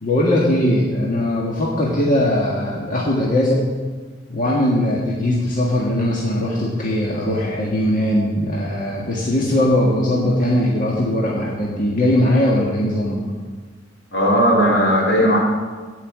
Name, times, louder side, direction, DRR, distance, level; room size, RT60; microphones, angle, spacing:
voice 1, 0.0-3.6 4.3-13.2, left 1 dB, 45° left, -4 dB, 1.7 m, -20 dB
voice 2, 14.1-15.4, equal, 75° left, -1 dB, 3.3 m, -16 dB
16.0 x 5.7 x 7.4 m, 1.4 s
head